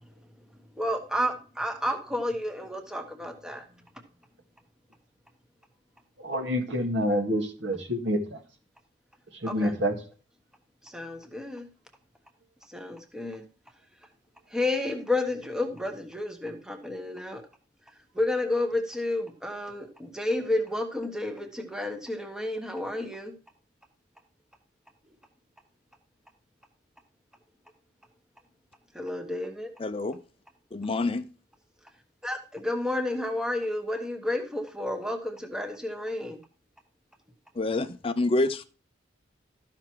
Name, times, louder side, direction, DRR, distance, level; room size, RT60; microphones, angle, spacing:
voice 1, 0.8-3.6 9.4-9.7 10.8-11.7 12.7-13.4 14.5-17.4 18.1-23.3 28.9-29.7 32.2-36.4, left 1 dB, 5° right, 1.3 m, -31 dB
voice 2, 6.2-8.4 9.3-9.9, equal, 65° right, 2.1 m, -27 dB
voice 3, 29.8-30.2 30.7-31.2 37.6-38.6, left 2 dB, 30° left, 0.5 m, -27 dB
13.5 x 5.9 x 4.6 m
head